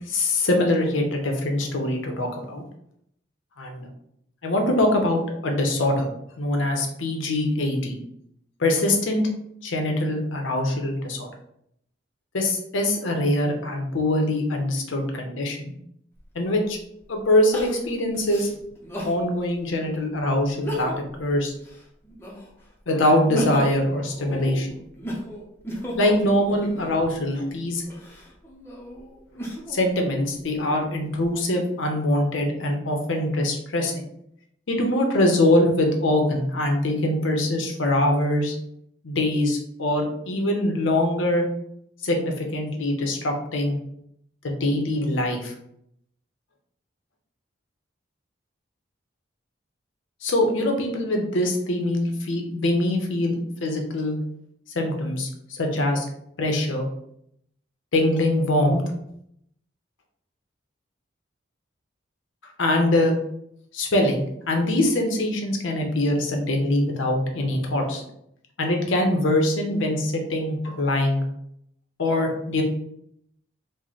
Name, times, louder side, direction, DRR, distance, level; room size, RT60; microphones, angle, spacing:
voice 1, 0.1-2.6 3.6-3.9 4.4-6.1 6.4-8.0 8.6-9.3 9.6-11.3 12.3-15.7 16.3-16.8 17.1-18.5 19.0-20.9 21.2-21.5 22.9-24.7 26.0-27.8 29.7-34.1 34.7-38.5 39.0-41.5 42.0-43.8 44.4-45.5 50.2-54.2 54.7-56.1 56.4-56.9 57.9-58.8 62.6-63.1 63.7-68.0 68.6-71.2 72.0-72.6, left 1 dB, 80° left, 3 dB, 0.7 m, -23 dB
Crying sobbing, 16.2-16.3 17.5-19.2 19.7-19.8 20.5-21.2 21.6-22.6 23.1-27.1 27.8-29.8 30.4-31.2, equal, 10° left, 0.5 m, -34 dB
3.1 x 2.1 x 3.9 m, 0.74 s
head